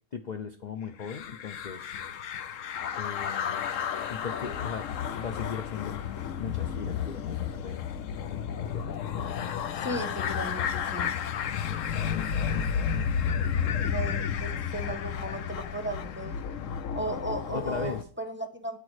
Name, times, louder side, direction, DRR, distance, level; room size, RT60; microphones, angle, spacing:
voice 1, 0.1-1.9 3.0-3.6 4.1-6.1 6.4-7.8 8.3-8.9 17.5-18.0, left 7 dB, 50° left, 8 dB, 0.5 m, -38 dB
sound 1, 1.0-18.0, left 7 dB, 65° left, 1.0 m, -32 dB
voice 2, 9.8-11.1 13.8-16.4 16.9-18.8, right 2 dB, 10° right, 7 dB, 1.1 m, -36 dB
9.8 x 8.4 x 4.8 m, 0.43 s
omnidirectional pair, 1.6 m